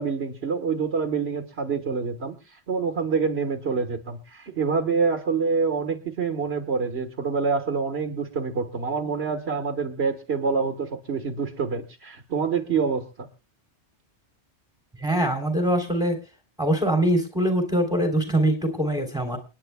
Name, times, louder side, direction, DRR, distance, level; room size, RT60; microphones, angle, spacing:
voice 1, 0.0-13.3, right 5 dB, 65° right, 7 dB, 1.7 m, -26 dB
voice 2, 15.0-16.2 16.6-19.4, right 1 dB, 5° right, 4 dB, 3.2 m, -23 dB
29.0 x 10.0 x 2.2 m, 0.30 s
omnidirectional pair, 1.2 m